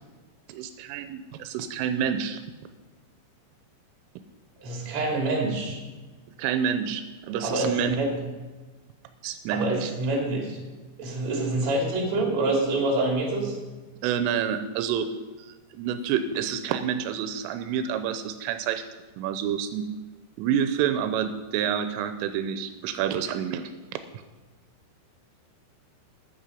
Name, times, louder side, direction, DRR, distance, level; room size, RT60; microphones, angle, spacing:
voice 1, 0.5-2.4 6.4-8.0 9.2-9.9 14.0-15.1 15.7-18.8 19.2-19.9 20.4-23.7, right 8 dB, 85° right, 9 dB, 3.2 m, -28 dB
voice 2, 4.6-5.8 7.4-8.2 9.5-10.6 11.0-13.6, right 2 dB, 40° right, 0 dB, 3.5 m, -26 dB
14.0 x 9.7 x 5.1 m, 1.2 s
omnidirectional pair, 5.7 m